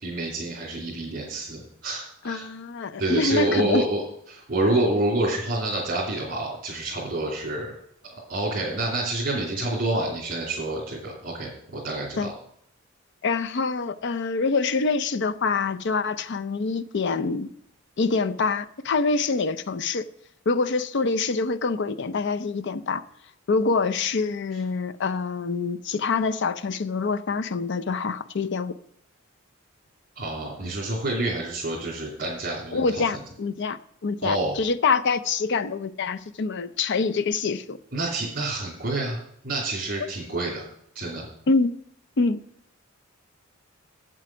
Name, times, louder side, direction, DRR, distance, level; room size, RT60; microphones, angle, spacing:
voice 1, 0.0-2.4 3.0-4.0 4.3-7.7 8.1-12.3 30.2-33.0 34.2-34.5 37.9-39.2 39.4-40.7 40.9-41.3, right 2 dB, 45° right, 2.9 m, -28 dB
voice 2, 2.2-3.8 12.2-12.3 13.2-17.5 18.0-20.0 20.5-23.0 23.5-28.8 32.7-37.8 41.5-41.7 42.2-42.4, left 4 dB, 60° left, 0.5 m, -25 dB
8.7 x 7.6 x 6.0 m
head